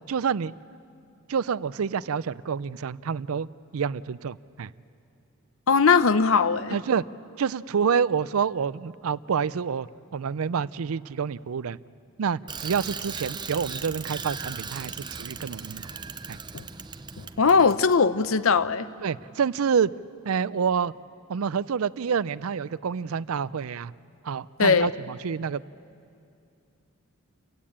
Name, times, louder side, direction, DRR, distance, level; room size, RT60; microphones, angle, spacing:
voice 1, 0.1-0.5 1.3-3.5 3.7-4.7 6.7-7.0 7.4-9.9 10.1-11.8 12.2-15.9 16.3-16.4 19.0-19.9 20.2-20.9 21.3-23.9 24.2-25.6, right 6 dB, 90° right, 19 dB, 0.5 m, -27 dB
voice 2, 5.7-6.7 16.5-16.6 17.2-18.9 24.6-24.9, left 5 dB, 75° left, 14 dB, 0.7 m, -20 dB
Bicycle, 12.5-18.0, right 5 dB, 20° right, 0.6 m, -37 dB
29.0 x 16.0 x 8.7 m, 2.6 s
head